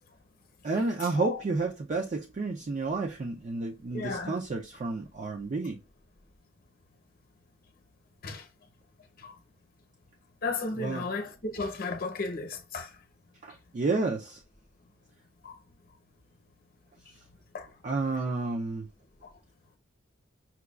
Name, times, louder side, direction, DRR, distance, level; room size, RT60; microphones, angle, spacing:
voice 1, 0.6-5.8 10.8-11.1 13.4-14.4 17.8-18.9, right 3 dB, 40° right, 0.4 m, -31 dB
voice 2, 3.9-4.3 8.2-8.5 9.2-9.3 10.4-12.9 15.4-15.5 17.5-17.7 19.2-19.3, left 3 dB, 50° left, 0.8 m, -34 dB
5.8 x 2.3 x 2.3 m
head